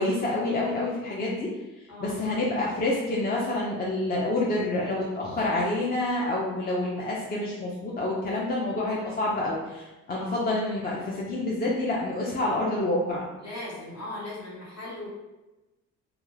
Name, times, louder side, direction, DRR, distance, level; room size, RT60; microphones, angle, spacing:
voice 1, 0.0-1.5 2.0-13.3, left 2 dB, 25° left, -4 dB, 0.5 m, -28 dB
voice 2, 13.4-15.1, left 1 dB, 50° left, -5 dB, 1.2 m, -38 dB
2.3 x 2.3 x 3.1 m, 1.1 s
supercardioid pair, 75°, 34 cm